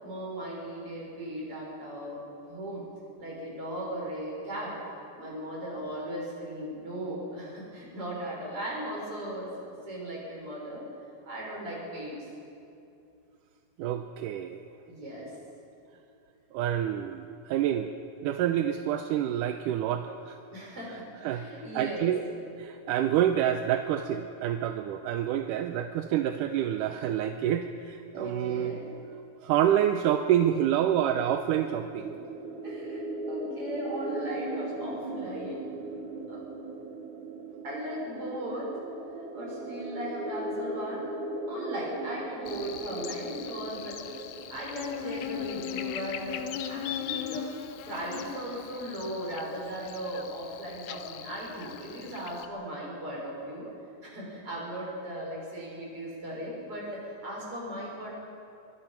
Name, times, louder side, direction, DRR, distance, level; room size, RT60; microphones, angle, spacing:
voice 1, 0.0-2.8 3.2-4.8 5.2-10.8 11.2-12.3 14.9-15.3 20.5-22.1 28.1-28.9 32.6-35.7 36.3-36.4 37.6-38.8 39.1-41.2 41.5-46.4 46.7-47.5 47.9-53.7 54.0-58.1, right 1 dB, 40° right, -4 dB, 7.4 m, -37 dB
voice 2, 13.8-14.6 16.5-17.9 18.2-20.4 21.2-21.5 21.8-22.2 22.6-28.8 29.4-32.1, right 10 dB, 80° right, 7 dB, 2.2 m, -27 dB
sound 1, 30.7-46.3, right 2 dB, 60° right, 2.8 m, -39 dB
Buzz, 42.5-52.5, left 10 dB, 75° left, 2.2 m, -39 dB
25.5 x 23.0 x 5.9 m, 2.6 s
omnidirectional pair, 3.9 m